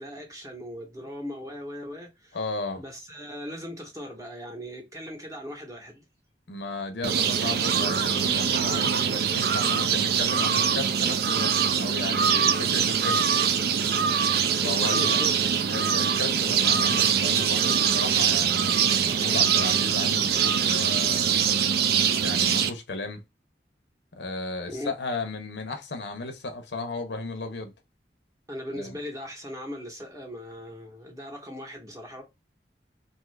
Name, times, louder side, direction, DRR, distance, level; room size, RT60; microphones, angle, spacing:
voice 1, 0.0-2.4 2.7-6.0 14.6-15.4 24.7-24.9 28.5-32.2, equal, 20° right, 0.8 m, -38 dB
voice 2, 2.3-2.8 6.5-13.3 14.6-15.2 15.7-18.8 19.0-21.4 22.2-23.2 24.2-27.7 28.7-29.0, left 3 dB, 80° left, 0.7 m, -34 dB
sound 1, 7.0-22.7, right 7 dB, 60° right, 0.4 m, -23 dB
2.7 x 2.4 x 3.2 m
head